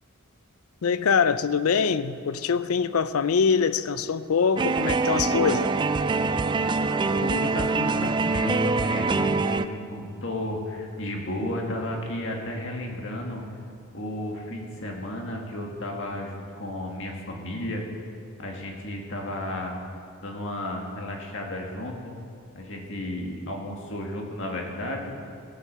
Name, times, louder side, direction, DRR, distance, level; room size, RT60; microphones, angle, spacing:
voice 1, 0.8-5.7, left 6 dB, 90° left, 0.5 m, -23 dB
sound 1, 4.6-9.7, right 3 dB, 20° right, 0.3 m, -24 dB
voice 2, 6.8-13.4 13.9-17.8 18.4-19.8 20.2-22.1 22.6-25.1, left 1 dB, 60° left, 2.0 m, -33 dB
17.0 x 7.7 x 6.7 m
head